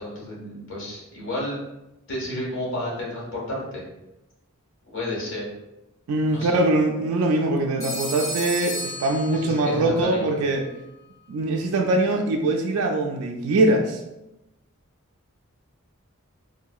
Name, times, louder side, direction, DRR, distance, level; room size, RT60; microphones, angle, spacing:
voice 1, 0.0-1.6 2.1-3.8 4.9-5.5 6.3-6.6 9.3-10.3, left 1 dB, 60° left, -4 dB, 1.3 m, -31 dB
voice 2, 6.1-10.7 11.3-14.0, right 2 dB, 80° right, 2 dB, 0.4 m, -22 dB
Telephone, 7.8-9.9, left 1 dB, 15° left, 1.1 m, -33 dB
3.6 x 2.7 x 2.3 m, 0.93 s
head